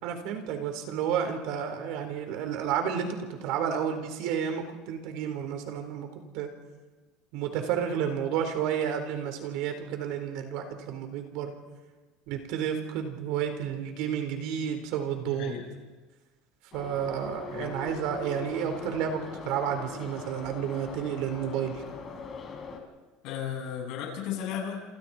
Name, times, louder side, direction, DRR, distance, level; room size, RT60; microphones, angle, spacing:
voice 1, 0.0-6.1 6.3-6.5 7.3-11.5 12.3-15.5 16.7-21.8, right 8 dB, 65° right, 6 dB, 4.2 m, -31 dB
voice 2, 15.2-15.7 17.5-17.7 23.2-24.8, left 8 dB, 60° left, 1 dB, 7.8 m, -35 dB
Subway metro underground, 16.7-22.8, left 5 dB, 30° left, 4.3 m, -41 dB
28.0 x 28.0 x 4.5 m, 1.3 s
cardioid pair, 155°, 0 cm